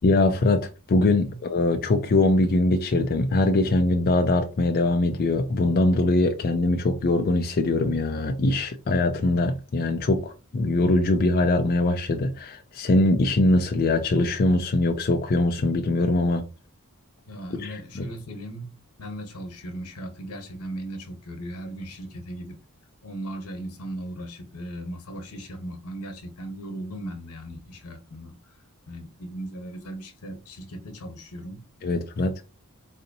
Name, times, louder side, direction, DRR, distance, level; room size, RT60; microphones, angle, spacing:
voice 1, 0.0-16.4 17.5-18.1 31.8-32.3, left 2 dB, 40° left, 0.4 m, -22 dB
voice 2, 17.3-18.7 19.0-22.6 23.0-28.3 28.9-31.7, right 1 dB, 80° left, 1.0 m, -37 dB
4.1 x 2.7 x 2.6 m
head